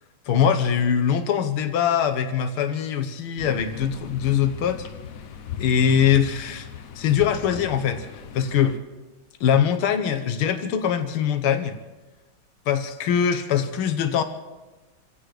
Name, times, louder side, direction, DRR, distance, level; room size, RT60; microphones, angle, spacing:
voice 1, 0.3-4.9 5.6-6.7 7.0-8.8 9.4-11.8 12.7-14.2, left 8 dB, 85° left, 7 dB, 1.9 m, -22 dB
sound 1, 3.4-8.8, left 8 dB, 65° left, 0.8 m, -37 dB
28.5 x 16.0 x 3.2 m, 1.2 s
omnidirectional pair, 2.3 m